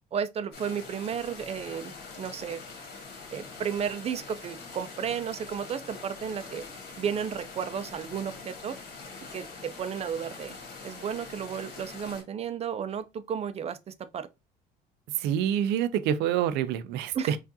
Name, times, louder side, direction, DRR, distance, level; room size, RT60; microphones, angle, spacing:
voice 1, 0.1-1.9 2.2-2.6 3.3-6.6 7.0-8.8 9.3-10.6 10.8-14.3 17.1-17.4, right 7 dB, 40° right, 0.5 m, -33 dB
sound 1, 0.5-12.2, left 4 dB, 75° left, 1.5 m, -44 dB
voice 2, 15.1-17.4, right 10 dB, 90° right, 0.5 m, -27 dB
4.6 x 2.5 x 2.7 m
cardioid pair, 110°, 17 cm